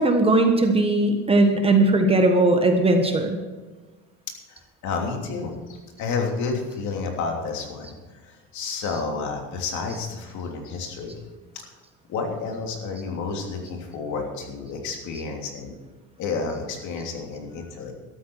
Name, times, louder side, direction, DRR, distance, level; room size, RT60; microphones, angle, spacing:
voice 1, 0.0-3.4, right 2 dB, 15° right, 4 dB, 1.3 m, -19 dB
voice 2, 4.5-7.9 8.2-11.2 11.5-11.7 12.1-15.7 16.2-17.9, left 4 dB, 55° left, 2 dB, 3.0 m, -30 dB
13.5 x 13.0 x 4.7 m, 1.3 s
cardioid pair, 140°, 35 cm